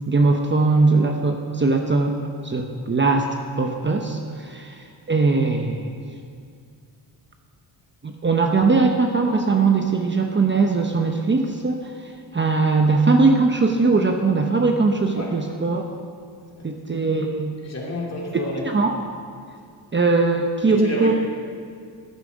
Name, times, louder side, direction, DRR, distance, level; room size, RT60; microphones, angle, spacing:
voice 1, 0.1-2.2 2.4-3.3 3.6-5.9 8.0-15.8 16.6-17.5 18.7-19.0 19.9-21.1, right 3 dB, 25° right, 3 dB, 0.9 m, -20 dB
voice 2, 17.6-18.7 20.7-21.1, left 1 dB, 35° left, -2 dB, 2.7 m, -30 dB
14.0 x 8.2 x 5.1 m, 2.3 s
cardioid pair, 90°, 43 cm